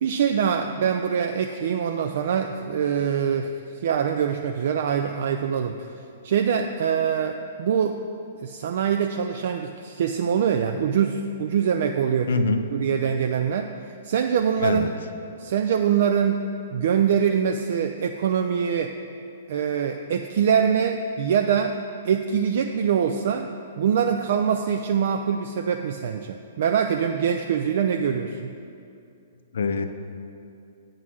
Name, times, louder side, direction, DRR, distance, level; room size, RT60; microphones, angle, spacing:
voice 1, 0.0-5.9 6.2-8.0 8.4-12.3 12.7-13.7 14.0-14.9 15.4-18.9 19.5-21.8 22.0-23.5 23.8-28.5, right 7 dB, 60° right, 5 dB, 0.3 m, -24 dB
voice 2, 12.3-12.7 14.6-14.9 29.5-29.9, left 4 dB, 70° left, 9 dB, 0.5 m, -24 dB
8.2 x 3.7 x 6.2 m, 2.5 s
figure-of-eight pair, 115°, 0 cm